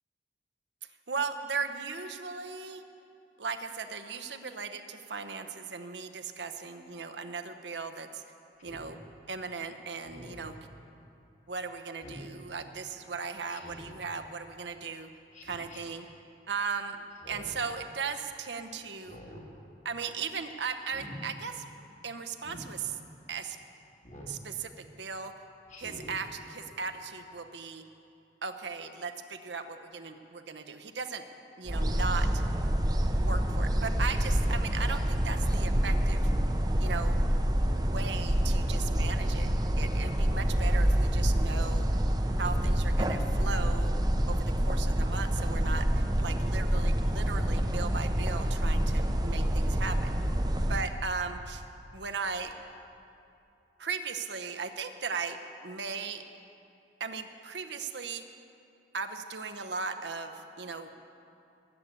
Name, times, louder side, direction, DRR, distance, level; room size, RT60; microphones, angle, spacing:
voice 1, 1.1-2.8 3.4-8.2 8.6-9.0 9.3-10.6 11.5-15.1 15.4-16.0 16.5-17.0 17.3-19.2 19.8-21.6 22.0-23.0 23.3-23.6 24.3-25.3 25.8-27.8 28.4-31.2 31.6-32.4 33.1-36.3 36.8-37.2 37.7-39.5 39.8-41.8 42.4-43.9 44.3-50.1 50.7-51.6 51.9-52.5 53.8-55.4 55.6-56.2 57.0-58.2 58.9-60.9, right 5 dB, 75° right, 7 dB, 1.0 m, -37 dB
Speech synthesizer, 8.6-8.9 10.0-10.5 12.0-12.3 13.5-14.0 15.3-15.8 17.1-17.6 18.9-19.5 20.8-21.2 22.4-22.7 24.0-24.4 25.7-26.2, equal, 40° left, 2.4 m, -47 dB
sound 1, 31.7-50.9, equal, 20° right, 0.8 m, -27 dB
20.5 x 8.3 x 8.4 m, 2.7 s
head